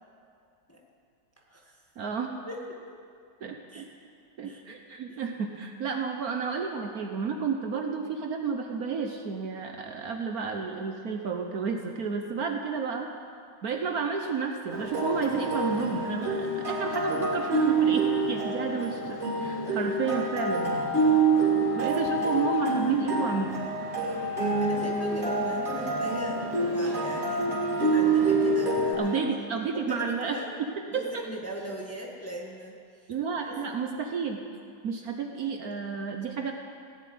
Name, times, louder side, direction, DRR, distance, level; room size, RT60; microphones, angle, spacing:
voice 1, 1.4-1.8 2.4-2.9 3.7-3.9 4.4-4.6 5.1-5.2 19.7-19.9 21.7-22.5 24.0-27.5 27.9-29.4 29.7-30.5 30.9-33.1 33.4-33.6 35.6-35.7, equal, 10° left, -1 dB, 1.3 m, -40 dB
voice 2, 2.0-2.4 3.4-3.9 4.4-13.1 13.6-20.9 21.7-23.5 29.0-30.4 30.9-31.2 33.1-34.4 34.8-36.5, right 5 dB, 60° right, 3 dB, 1.3 m, -31 dB
sound 1, 14.7-28.9, right 3 dB, 35° right, 3.4 m, -27 dB
16.5 x 7.6 x 9.4 m, 2.3 s
omnidirectional pair, 2.0 m